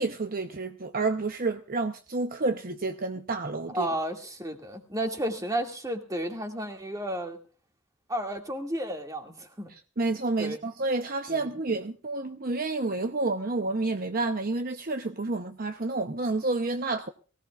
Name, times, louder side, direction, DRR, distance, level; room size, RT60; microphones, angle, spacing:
voice 1, 0.0-3.9 9.7-17.1, right 3 dB, 50° right, 0.8 m, -29 dB
voice 2, 3.7-7.4 8.1-9.7 10.4-10.6 11.3-11.5, right 1 dB, 20° right, 2.3 m, -32 dB
22.5 x 17.0 x 2.4 m
head